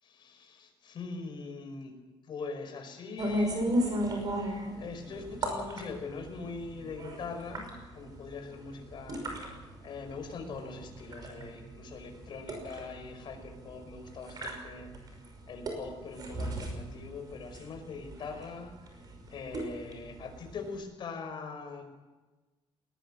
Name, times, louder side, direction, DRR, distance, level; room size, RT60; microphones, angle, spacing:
voice 1, 0.0-1.9 2.2-9.4 9.8-14.9 15.5-18.7 19.3-21.8, left 4 dB, 50° left, 5 dB, 5.0 m, -42 dB
sound 1, 3.2-20.7, right 1 dB, 40° right, 5.8 m, -37 dB
20.5 x 20.5 x 7.5 m, 1.2 s
cardioid pair, 170°, 10 cm